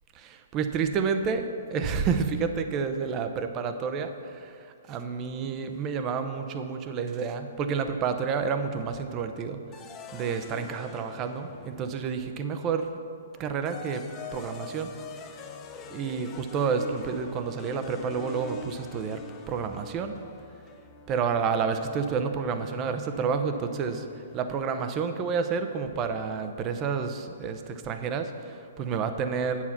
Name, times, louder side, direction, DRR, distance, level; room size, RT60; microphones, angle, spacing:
voice 1, 0.1-9.6 10.1-13.0 13.4-14.0 14.3-14.9 15.9-19.2 19.5-20.2 21.1-24.1 24.3-29.6, right 6 dB, 30° right, 8 dB, 0.7 m, -29 dB
sound 1, 9.7-12.3 13.4-24.5, left 4 dB, 25° left, 0.7 m, -45 dB
8.3 x 7.2 x 5.9 m, 2.5 s
hypercardioid pair, 130°, 0 cm